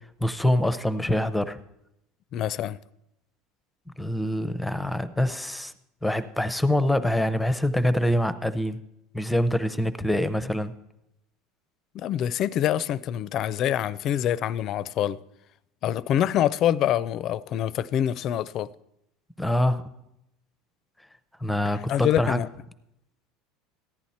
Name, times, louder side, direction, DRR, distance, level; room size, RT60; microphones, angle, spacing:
voice 1, 0.2-1.6 4.0-5.7 6.0-8.8 9.1-10.7 19.4-19.8 21.4-22.4, left 1 dB, 5° left, 0.6 m, -25 dB
voice 2, 2.3-2.8 11.9-15.2 15.8-18.7 21.6-22.5, left 11 dB, 45° left, 0.4 m, -25 dB
14.5 x 10.5 x 4.2 m
supercardioid pair, 140°, 0 cm